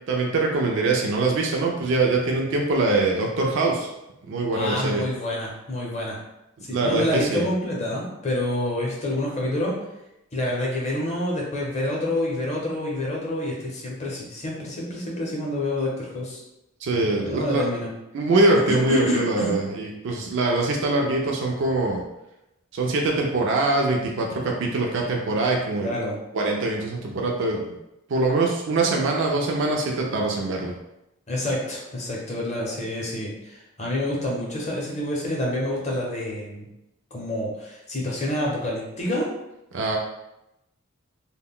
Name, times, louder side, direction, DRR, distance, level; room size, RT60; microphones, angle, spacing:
voice 1, 0.1-3.9 4.2-5.1 6.7-7.4 16.8-17.6 18.1-22.0 22.7-25.9 26.3-27.8 28.1-30.7 39.7-40.0, right 2 dB, 55° right, 0 dB, 0.4 m, -23 dB
voice 2, 4.5-6.2 6.6-9.8 10.3-16.4 17.2-17.9 18.5-19.6 25.8-26.2 31.3-36.7 37.1-39.3, left 1 dB, 30° left, -3 dB, 0.6 m, -28 dB
2.2 x 2.1 x 3.6 m, 0.90 s
head